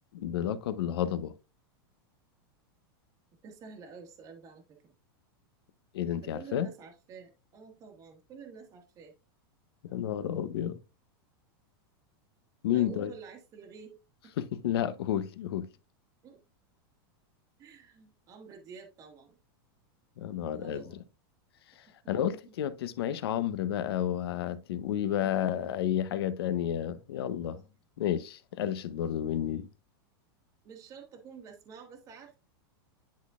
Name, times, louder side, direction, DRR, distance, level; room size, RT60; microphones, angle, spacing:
voice 1, 0.1-1.3 5.9-6.7 9.8-10.8 12.6-13.1 14.4-15.7 20.2-20.8 22.1-27.6 28.0-29.7, left 10 dB, 80° left, 0.8 m, -31 dB
voice 2, 3.4-4.9 6.2-9.1 12.7-14.3 16.2-16.4 17.6-19.4 20.5-21.0 22.2-22.5 25.2-25.7 27.4-27.7 30.6-32.4, right 6 dB, 25° right, 1.2 m, -49 dB
10.5 x 4.1 x 2.4 m
supercardioid pair, 155°, 13 cm